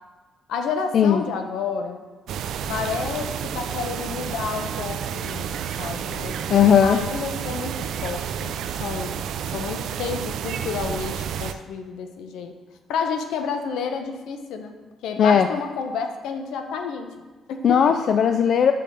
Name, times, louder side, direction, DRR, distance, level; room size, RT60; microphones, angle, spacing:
voice 1, 0.5-2.0 2.7-6.4 6.8-12.6 12.9-14.7 15.0-17.9, left 5 dB, 85° left, 5 dB, 0.7 m, -30 dB
sound 1, 2.3-11.5, right 8 dB, 75° right, 0.3 m, -30 dB
voice 2, 6.5-7.0 15.2-15.5 17.6-18.7, left 8 dB, 60° left, 8 dB, 0.3 m, -17 dB
5.7 x 5.4 x 5.1 m, 1.3 s
cardioid pair, 90°, 0 cm